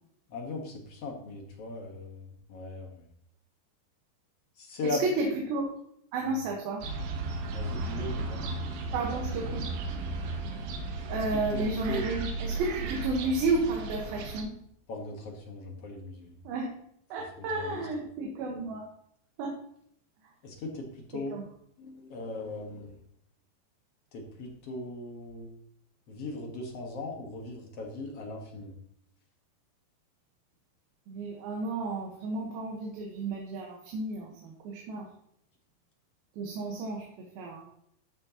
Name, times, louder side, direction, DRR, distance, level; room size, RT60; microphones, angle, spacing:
voice 1, 0.3-3.1 4.5-5.3 6.2-6.4 7.5-8.5 11.1-12.1 14.9-16.4 17.4-17.9 20.4-21.4 21.8-23.0 24.1-25.5 26.1-28.7, left 2 dB, 60° left, 1 dB, 1.7 m, -38 dB
voice 2, 6.1-6.8 8.9-9.6 11.1-14.5 16.4-16.7 17.1-18.8 19.4-19.5 21.3-21.4 31.1-35.1 36.4-37.0 37.4-37.6, right 3 dB, 70° right, -1 dB, 3.0 m, -32 dB
sound 1, 6.8-14.4, right 2 dB, 90° right, 3.1 m, -35 dB
13.5 x 6.3 x 2.9 m, 0.69 s
omnidirectional pair, 4.5 m